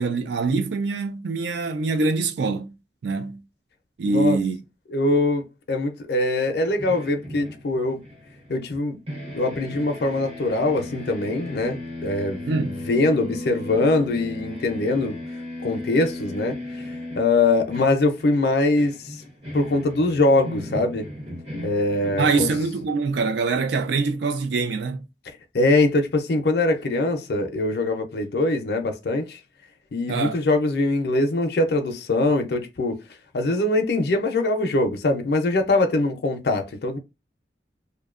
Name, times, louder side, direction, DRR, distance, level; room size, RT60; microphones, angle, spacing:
voice 1, 0.0-2.7 3.0-3.4 4.0-4.6 12.5-12.7 22.2-25.1 30.1-30.4, right 4 dB, 75° right, 0.4 m, -24 dB
voice 2, 4.1-4.4 4.9-8.0 8.5-9.0 9.3-15.2 15.6-16.6 17.2-19.2 19.5-21.1 21.6-22.5 25.3-29.4 29.9-33.0 33.3-37.0, left 2 dB, 65° left, 0.5 m, -22 dB
sound 1, 6.6-8.8 9.1-23.0, left 1 dB, 35° right, 0.7 m, -36 dB
2.6 x 2.2 x 2.4 m
head